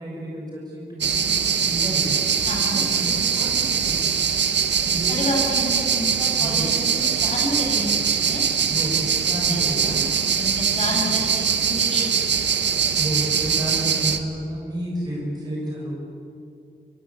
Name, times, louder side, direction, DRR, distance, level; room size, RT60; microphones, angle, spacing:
voice 1, 0.0-2.1 2.7-4.1 4.8-5.2 6.4-6.7 8.7-10.0 10.8-11.1 13.0-15.9, right 1 dB, 20° right, -4 dB, 6.3 m, -31 dB
sound 1, 1.0-14.2, right 7 dB, 90° right, 1.5 m, -22 dB
voice 2, 2.5-2.8 5.1-7.9 8.3-8.4 9.5-10.0 10.4-12.0, left 1 dB, 40° left, -1 dB, 7.4 m, -30 dB
27.0 x 22.0 x 8.5 m, 2.7 s
wide cardioid pair, 110°, 18 cm